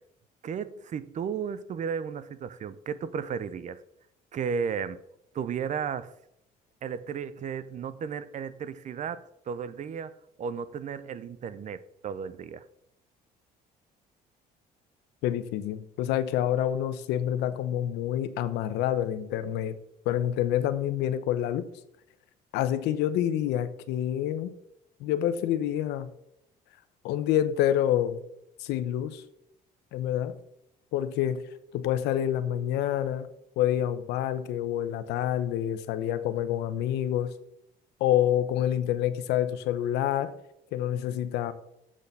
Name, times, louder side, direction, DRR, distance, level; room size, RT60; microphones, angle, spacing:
voice 1, 0.4-3.8 4.3-5.0 5.3-6.1 6.8-10.1 10.4-12.6, right 7 dB, 45° right, 0.7 m, -34 dB
voice 2, 15.2-19.8 20.1-21.6 22.5-24.5 25.0-26.1 27.0-28.2 28.6-29.2 29.9-30.3 30.9-31.4 31.7-33.3 33.6-37.3 38.0-40.3 40.7-41.5, left 11 dB, 90° left, 0.8 m, -27 dB
7.5 x 6.6 x 6.9 m
cardioid pair, 110°, 17 cm